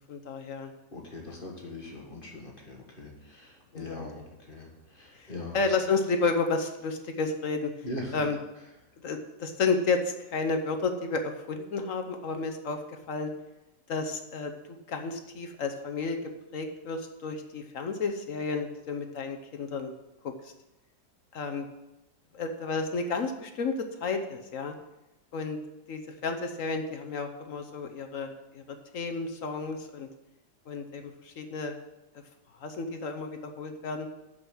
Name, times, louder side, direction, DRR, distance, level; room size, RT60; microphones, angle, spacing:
voice 1, 0.1-0.7 1.3-1.4 3.7-4.3 5.2-7.7 8.1-8.4 9.0-13.3 13.9-19.9 20.4-20.5 21.3-21.6 22.3-23.7 24.0-24.7 25.3-25.6 25.9-30.1 30.7-31.8 32.6-34.1, left 4 dB, 55° left, 5 dB, 1.1 m, -32 dB
voice 2, 0.9-4.2 4.5-4.7 4.9-5.6 7.8-8.1, left 2 dB, 30° left, 0 dB, 1.6 m, -40 dB
7.2 x 6.8 x 7.7 m, 0.96 s
omnidirectional pair, 1.8 m